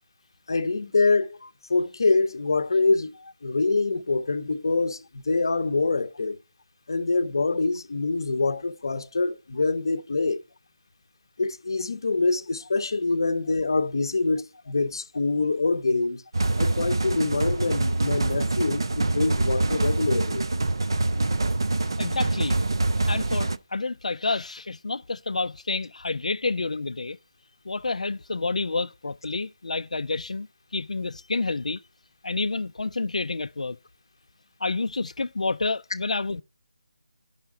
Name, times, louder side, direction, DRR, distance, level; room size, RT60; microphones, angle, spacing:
voice 1, 0.5-1.4 1.7-3.1 3.4-6.4 6.9-10.4 11.4-16.2 16.6-20.5, left 3 dB, 40° left, 0.7 m, -25 dB
sound 1, 16.3-23.6, right 2 dB, 40° right, 0.4 m, -25 dB
voice 2, 22.0-22.6 23.1-27.2 27.7-30.5 30.7-31.8 32.2-33.8 34.6-36.4, left 3 dB, 90° left, 0.4 m, -29 dB
10.5 x 5.7 x 4.7 m
figure-of-eight pair, 180°, 4 cm